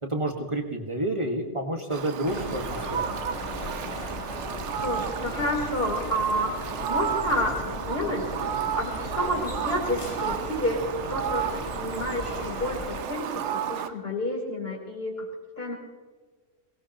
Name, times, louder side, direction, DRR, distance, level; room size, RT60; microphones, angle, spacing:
voice 1, 0.0-3.1, right 1 dB, 25° right, 1 dB, 1.7 m, -29 dB
Fowl, 1.9-13.9, right 8 dB, 70° right, 1.0 m, -32 dB
sound 1, 2.2-13.0, left 4 dB, 30° left, 0.7 m, -38 dB
voice 2, 4.8-8.4 8.8-15.3 15.6-15.7, equal, 50° left, -1 dB, 3.9 m, -30 dB
22.5 x 19.0 x 3.0 m, 1.4 s
omnidirectional pair, 1.3 m